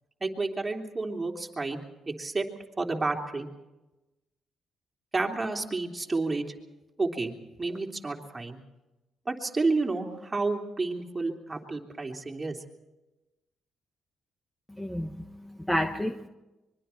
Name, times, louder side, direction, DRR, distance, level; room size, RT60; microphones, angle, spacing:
voice 1, 0.2-1.8 2.1-2.5 2.8-3.5 5.1-6.5 7.0-7.3 7.6-8.6 9.2-12.6, right 3 dB, 20° right, 1 dB, 3.3 m, -30 dB
voice 2, 14.8-16.3, equal, 10° left, 6 dB, 1.2 m, -31 dB
25.0 x 23.0 x 4.5 m, 1.0 s
cardioid pair, 90°, 0 cm